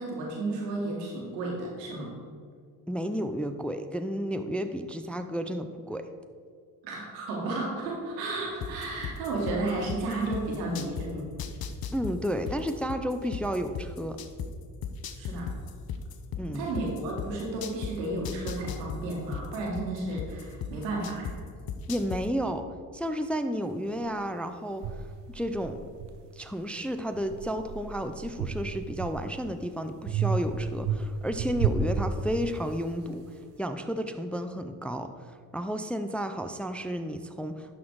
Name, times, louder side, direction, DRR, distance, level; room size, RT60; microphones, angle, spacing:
voice 1, 0.0-2.1 6.8-11.3 15.2-15.5 16.5-21.3, right 2 dB, 85° right, -2 dB, 1.8 m, -33 dB
voice 2, 2.9-6.1 11.9-14.2 16.4-16.7 21.9-22.7 22.9-24.9 25.3-25.8 26.3-33.2 33.6-37.7, equal, 5° left, 8 dB, 0.5 m, -32 dB
sound 1, 8.6-11.1 11.4-14.5 14.8-17.9 18.2-21.3 21.7-22.2, left 8 dB, 45° left, 0.9 m, -35 dB
sound 2, 24.0-24.1 24.8-26.7 27.1-29.5 30.1-32.8, right 5 dB, 60° right, 0.8 m, -32 dB
11.5 x 4.2 x 4.7 m, 2.1 s
hypercardioid pair, 50°, 49 cm